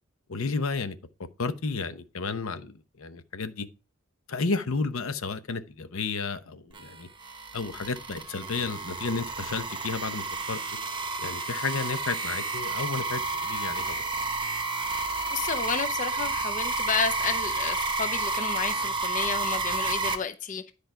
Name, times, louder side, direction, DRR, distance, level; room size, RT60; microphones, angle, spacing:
voice 1, 0.3-1.0 1.4-3.7 4.3-7.1 7.5-10.6 11.2-14.0, left 4 dB, 85° left, 0.8 m, -32 dB
sound 1, 6.7-20.2, right 3 dB, 25° right, 0.9 m, -31 dB
voice 2, 15.3-20.7, left 6 dB, 40° left, 0.6 m, -31 dB
10.5 x 5.0 x 4.5 m
head